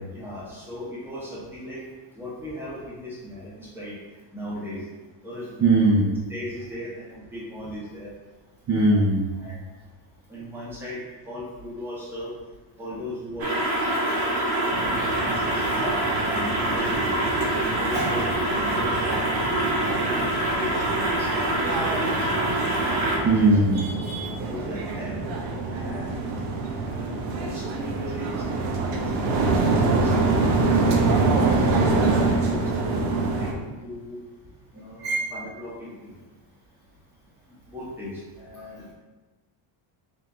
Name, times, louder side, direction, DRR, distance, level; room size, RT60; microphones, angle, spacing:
voice 1, 0.1-1.8 2.1-3.9 4.3-4.8 5.2-5.6 6.3-8.1 8.9-9.0 9.4-9.5 10.3-11.0 11.2-12.3 12.8-15.8 16.3-17.2 17.6-19.4 19.8-22.4 24.5-25.1 25.7-26.2 26.8-28.4 28.9-30.6 31.2-31.5 32.1-34.2 34.7-36.1 37.7-38.8, equal, 5° right, -8 dB, 0.8 m, -37 dB
voice 2, 5.6-6.1 8.7-9.3 17.6-18.1 23.2-24.3 26.7-26.8 35.0-35.3, right 2 dB, 40° right, -5 dB, 0.5 m, -21 dB
sound 1, 13.4-23.2, right 1 dB, 65° right, 1.2 m, -25 dB
sound 2, 14.7-33.5, right 3 dB, 90° right, 0.7 m, -26 dB
3.6 x 2.9 x 3.7 m, 1.2 s
cardioid pair, 180°, 49 cm